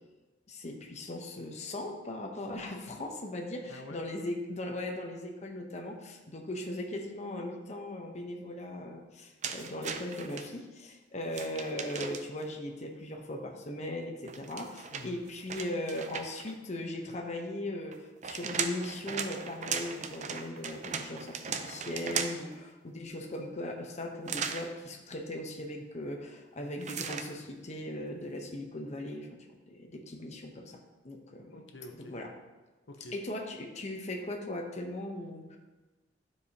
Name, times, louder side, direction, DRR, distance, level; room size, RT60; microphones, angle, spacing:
voice 1, 0.5-30.8 31.0-31.6 32.0-32.3 33.1-35.6, left 1 dB, 40° left, 2 dB, 0.9 m, -38 dB
voice 2, 3.7-4.0 14.9-15.2 31.5-32.2 32.9-33.1, left 2 dB, 90° left, 4 dB, 0.8 m, -47 dB
sound 1, 9.4-10.5 11.3-12.4 14.2-16.5 17.9-22.5 24.3-24.7 26.8-27.3, right 6 dB, 40° right, 0.5 m, -37 dB
12.0 x 4.8 x 2.8 m, 1.2 s
head